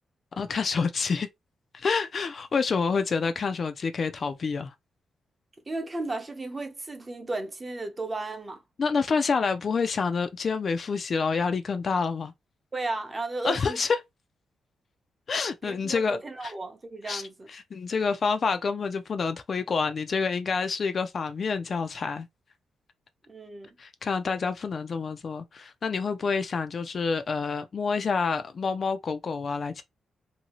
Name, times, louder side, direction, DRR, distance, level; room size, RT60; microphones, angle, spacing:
voice 1, 0.4-1.3 1.7-4.7 8.8-12.3 13.4-14.0 15.3-16.5 17.1-17.2 17.5-22.3 23.8-29.8, left 5 dB, 40° left, 0.3 m, -28 dB
voice 2, 5.7-8.6 12.7-13.8 15.6-17.5 23.3-23.7, right 2 dB, 20° right, 0.7 m, -34 dB
2.7 x 2.7 x 2.9 m
wide cardioid pair, 150°, 0 cm